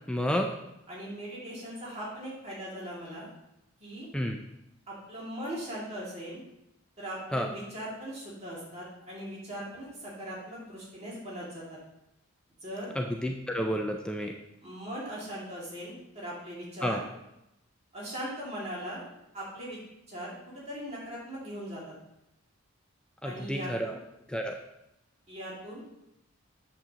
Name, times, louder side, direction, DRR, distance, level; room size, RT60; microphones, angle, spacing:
voice 1, 0.1-0.5 4.1-4.4 7.3-7.5 13.0-14.3 16.8-17.0 23.2-23.9 24.3-24.6, equal, 5° left, 2 dB, 0.4 m, -30 dB
voice 2, 0.9-3.3 3.8-4.1 4.9-6.4 7.0-11.8 12.6-12.9 14.6-17.0 17.9-19.0 19.3-19.8 20.1-20.3 20.7-21.9 23.2-23.9 25.3-26.0, equal, 30° right, -6 dB, 2.4 m, -39 dB
8.2 x 7.4 x 2.9 m, 0.86 s
head